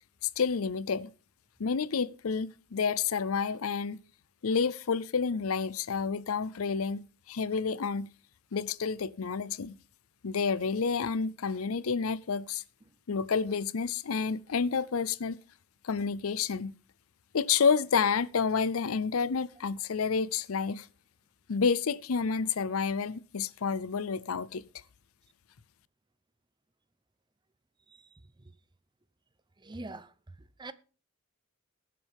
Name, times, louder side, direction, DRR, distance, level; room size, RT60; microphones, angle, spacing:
voice 1, 0.4-1.1 1.6-4.0 4.4-8.1 8.5-9.8 10.2-12.6 13.1-15.4 15.8-16.7 17.3-20.9 21.5-24.6, left 5 dB, 70° left, 0.5 m, -29 dB
voice 2, 29.6-30.1 30.6-30.7, right 2 dB, 20° right, 0.6 m, -43 dB
21.0 x 7.6 x 3.5 m
head